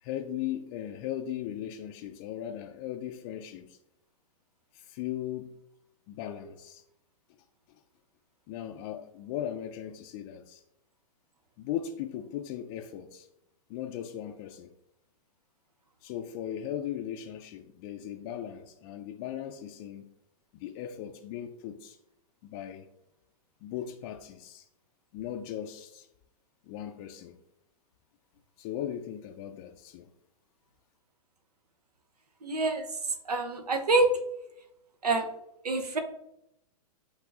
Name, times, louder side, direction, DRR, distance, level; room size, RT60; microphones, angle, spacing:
voice 1, 0.0-3.8 4.7-5.6 6.1-6.8 8.5-10.6 11.6-13.3 13.7-14.7 16.0-20.1 20.5-22.0 22.4-22.9 23.6-24.7 25.1-26.1 26.6-27.4 28.6-30.1, left 10 dB, 40° left, 0.4 m, -38 dB
voice 2, 32.4-32.9 33.3-34.1 35.0-35.3 35.6-36.0, right 3 dB, 85° right, 0.7 m, -26 dB
8.1 x 2.7 x 2.4 m
hypercardioid pair, 110°, 20 cm